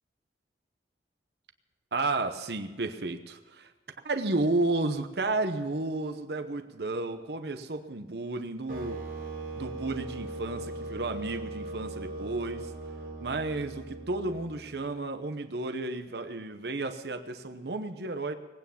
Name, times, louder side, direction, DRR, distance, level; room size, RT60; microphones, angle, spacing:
voice 1, 1.9-3.7 4.0-9.0 9.5-12.7 13.2-18.3, right 2 dB, 70° right, 7 dB, 0.9 m, -32 dB
sound 1, 8.7-14.8, right 2 dB, 50° right, 2.3 m, -39 dB
19.5 x 9.3 x 7.0 m, 1.2 s
head